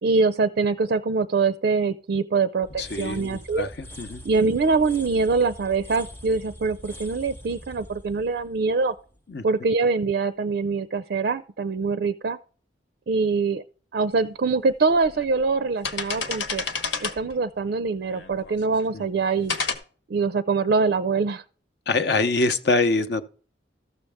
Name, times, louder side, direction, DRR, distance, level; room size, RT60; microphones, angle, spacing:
voice 1, 0.0-3.7 4.2-8.9 9.4-12.4 13.1-13.6 13.9-16.6 17.0-19.6 20.1-21.4, right 4 dB, 55° right, 0.4 m, -24 dB
sound 1, 2.6-9.5, equal, 10° left, 0.7 m, -43 dB
voice 2, 2.8-4.2 9.3-9.4 18.9-19.0 21.9-23.2, left 3 dB, 60° left, 0.8 m, -24 dB
sound 2, 14.2-14.3 14.9-15.3 15.6-17.4 18.1-18.8 19.5-19.8, left 5 dB, 75° left, 1.3 m, -30 dB
13.5 x 6.4 x 3.5 m
head